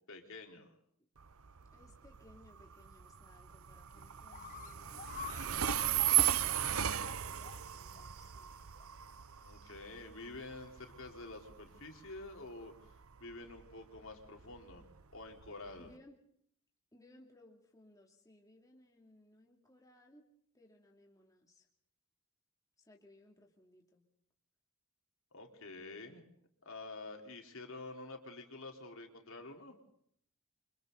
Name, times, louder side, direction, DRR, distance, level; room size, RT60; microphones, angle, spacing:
voice 1, 0.1-0.7 9.4-14.9 15.1-15.9 25.3-26.2 26.6-29.8, left 2 dB, 60° left, 2 dB, 4.2 m, -48 dB
Train, 1.2-15.9, right 11 dB, 70° right, 0.8 m, -37 dB
voice 2, 1.7-5.2 5.4-8.5 15.7-16.2 16.9-20.3 20.5-21.7 22.8-24.0, left 1 dB, 15° left, 0 dB, 2.8 m, -63 dB
sound 1, 4.0-4.1 4.3-7.6 8.0-8.1 8.8-8.9, left 6 dB, 35° left, 1.4 m, -47 dB
28.5 x 26.5 x 4.1 m, 0.67 s
head